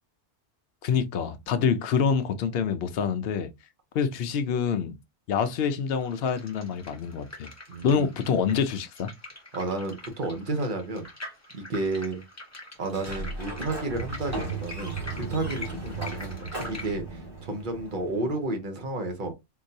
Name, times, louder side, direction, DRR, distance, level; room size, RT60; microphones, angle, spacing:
voice 1, 0.8-3.5 3.9-4.9 5.3-7.5 7.8-9.1, left 6 dB, 60° left, 0.8 m, -26 dB
sound 1, 5.9-16.9, left 1 dB, 15° left, 0.8 m, -44 dB
voice 2, 7.7-8.1 9.5-11.1 11.5-12.2 12.8-19.3, right 2 dB, 45° right, 1.0 m, -32 dB
Sliding door, 12.8-18.5, right 3 dB, 20° right, 1.3 m, -36 dB
3.8 x 2.7 x 2.6 m
omnidirectional pair, 1.2 m